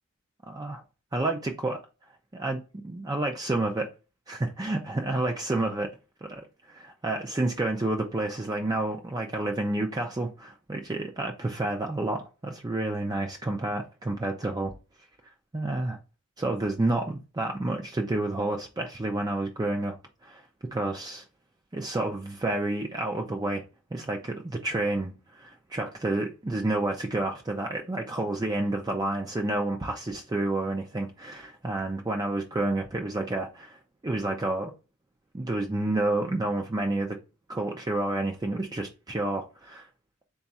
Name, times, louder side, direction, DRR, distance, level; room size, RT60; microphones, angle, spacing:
voice 1, 0.5-0.8 1.1-1.8 2.3-3.9 4.3-5.9 6.2-14.7 15.5-16.0 16.4-20.0 20.2-20.4 20.7-21.2 21.7-23.6 23.9-34.7 35.3-37.2 37.5-39.8, right 2 dB, 20° right, 0.5 m, -29 dB
4.0 x 2.3 x 4.0 m
head